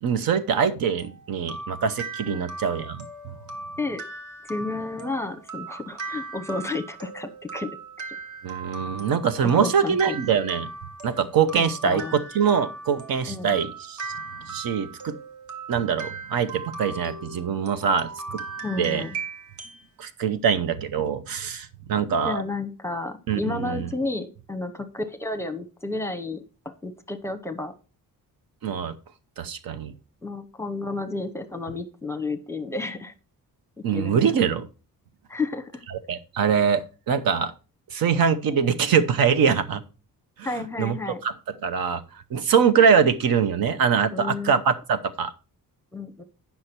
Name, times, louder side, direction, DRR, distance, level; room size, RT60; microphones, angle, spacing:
voice 1, 0.0-3.1 8.4-10.7 11.0-14.1 14.5-15.1 15.7-18.4 18.7-19.1 20.0-22.4 23.3-23.9 28.6-28.9 29.4-29.9 33.8-34.7 36.1-37.5 37.9-39.8 40.4-41.3 41.6-42.0 42.3-45.3, right 7 dB, 80° right, 12 dB, 0.9 m, -23 dB
sound 1, 1.0-19.9, right 3 dB, 55° right, 1.4 m, -38 dB
voice 2, 4.4-7.7 9.4-10.2 11.6-12.2 13.3-13.6 18.6-19.2 22.2-27.7 30.2-33.1 33.9-34.5 35.3-35.8 40.4-41.2 44.1-44.6 45.9-46.2, left 3 dB, 10° left, 8 dB, 0.8 m, -31 dB
9.5 x 5.8 x 4.3 m, 0.34 s
cardioid pair, 135°, 35 cm